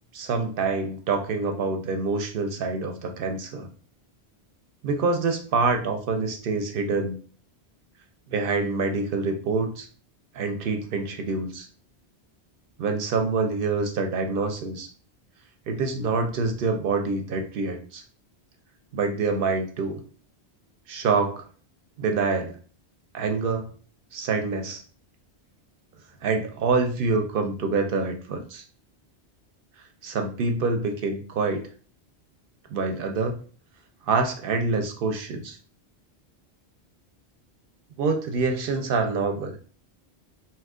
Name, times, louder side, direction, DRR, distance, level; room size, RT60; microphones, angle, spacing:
voice 1, 0.1-3.7 4.8-7.2 8.3-9.9 10.3-11.7 12.8-14.9 15.7-18.0 18.9-20.0 20.9-21.4 22.0-22.6 23.1-23.7 24.1-24.8 26.2-28.6 30.0-31.6 32.7-33.4 34.1-35.6 38.0-39.6, right 4 dB, 65° right, 5 dB, 0.7 m, -26 dB
2.8 x 2.3 x 3.5 m, 0.41 s
omnidirectional pair, 1.1 m